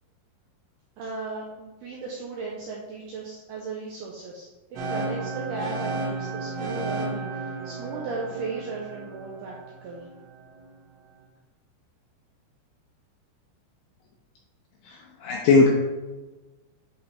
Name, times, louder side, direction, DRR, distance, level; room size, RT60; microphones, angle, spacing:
voice 1, 1.0-9.6 9.8-10.0, right 3 dB, 90° right, -3 dB, 2.3 m, -36 dB
sound 1, 4.8-10.7, right 3 dB, 70° right, 3.1 m, -33 dB
voice 2, 14.8-15.7, left 4 dB, 80° left, -1 dB, 2.4 m, -19 dB
10.5 x 4.1 x 3.5 m, 1.2 s
omnidirectional pair, 5.7 m